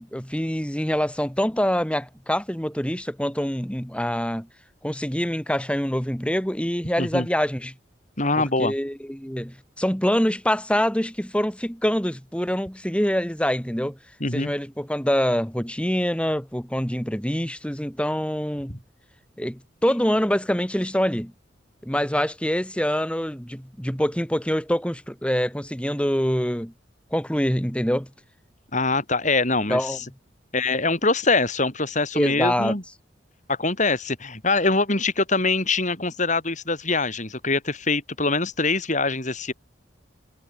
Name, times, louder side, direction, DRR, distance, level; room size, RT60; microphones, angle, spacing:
voice 1, 0.0-4.5 4.8-7.7 8.4-14.0 14.3-18.8 19.4-21.3 21.8-26.7 27.1-28.1 29.7-30.0 32.1-32.8, equal, 5° left, 4.0 m, -25 dB
voice 2, 8.2-8.7 14.2-14.5 28.7-30.0 30.5-32.8 33.5-39.5, left 3 dB, 40° left, 5.0 m, -23 dB
head